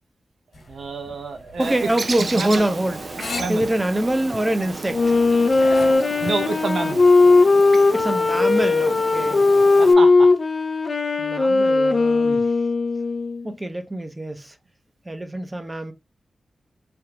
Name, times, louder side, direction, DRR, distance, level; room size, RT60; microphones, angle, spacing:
sound 1, 0.5-6.0, left 3 dB, 70° left, 1.3 m, -36 dB
voice 1, 0.6-1.9 2.3-2.6 3.4-3.6 5.9-7.0 9.8-10.3, right 4 dB, 80° right, 0.7 m, -28 dB
voice 2, 1.6-5.1 7.9-9.5 11.2-12.5 13.4-14.6 15.1-15.9, right 1 dB, 20° right, 0.7 m, -25 dB
Bird, 1.6-9.9, right 4 dB, 55° right, 0.3 m, -34 dB
Wind instrument woodwind instrument, 4.9-13.5, left 3 dB, 50° left, 0.5 m, -18 dB
3.4 x 2.3 x 2.8 m
wide cardioid pair, 75°, 0 cm